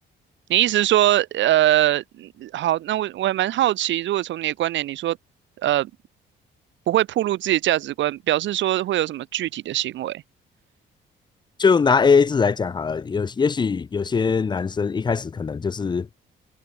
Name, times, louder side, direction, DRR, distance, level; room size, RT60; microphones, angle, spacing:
voice 1, 0.5-5.2 5.6-5.9 6.9-10.2, right 13 dB, 70° right, 0.7 m, -22 dB
voice 2, 11.6-16.1, left 5 dB, 20° left, 0.4 m, -21 dB
cardioid pair, 90°, 20 cm